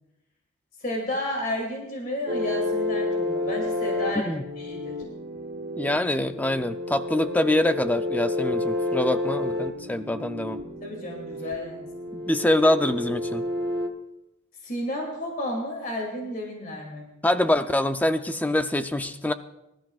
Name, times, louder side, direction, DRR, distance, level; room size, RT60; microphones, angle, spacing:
voice 1, 0.8-4.3 4.6-5.0 10.8-11.9 14.6-17.1, left 1 dB, 40° left, 0 dB, 2.7 m, -32 dB
sound 1, 2.3-13.9, left 2 dB, 45° right, 1.0 m, -30 dB
voice 2, 4.1-4.4 5.8-10.6 12.3-13.5 17.2-19.3, left 1 dB, 5° left, 9 dB, 0.4 m, -24 dB
24.5 x 13.0 x 2.5 m, 0.92 s
head